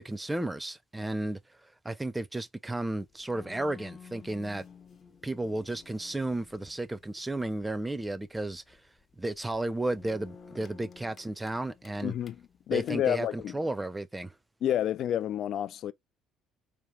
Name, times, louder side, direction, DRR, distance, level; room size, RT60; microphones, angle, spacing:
voice 1, 0.0-1.4 1.8-4.6 5.2-8.8 9.2-12.1 12.7-14.3, right 2 dB, 15° right, 0.6 m, -33 dB
sound 1, 2.9-12.9, left 6 dB, 40° left, 1.0 m, -54 dB
voice 2, 12.0-12.3 12.7-13.5 14.6-15.9, left 11 dB, 55° left, 0.4 m, -29 dB
4.6 x 2.9 x 3.4 m
hypercardioid pair, 55°, 0 cm